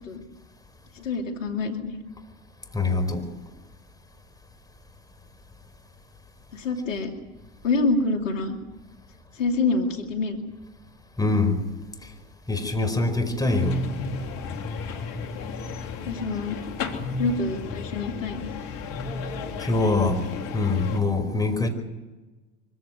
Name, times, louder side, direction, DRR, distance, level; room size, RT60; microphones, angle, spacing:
voice 1, 1.0-2.0 6.5-7.1 7.6-8.6 9.4-10.4 16.1-16.6 17.2-18.4, left 3 dB, 85° left, 5 dB, 2.6 m, -26 dB
voice 2, 2.7-3.2 11.2-11.5 12.5-13.7 19.6-20.2 20.5-21.7, left 3 dB, 10° left, 6 dB, 4.9 m, -23 dB
sound 1, 13.4-21.0, left 4 dB, 60° left, 3.1 m, -33 dB
24.0 x 15.5 x 9.3 m, 1.2 s
hypercardioid pair, 80°, 37 cm